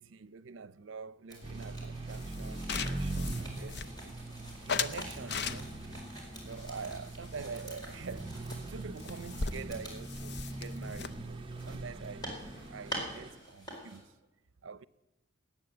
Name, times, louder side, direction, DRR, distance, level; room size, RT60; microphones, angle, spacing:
voice 1, 0.0-4.2 4.7-5.8 6.4-8.3 8.7-12.4 12.7-14.1 14.6-14.9, right 5 dB, 85° right, 0.6 m, -45 dB
sound 1, 1.3-14.0, right 1 dB, 20° left, 4.6 m, -47 dB
sound 2, 1.4-13.3, right 2 dB, 25° right, 0.8 m, -41 dB
sound 3, 2.1-4.2 4.7-6.0 6.6-7.8 8.1-8.2 8.5-8.6 8.8-12.7, left 5 dB, 60° left, 0.7 m, -39 dB
19.0 x 9.1 x 7.8 m
head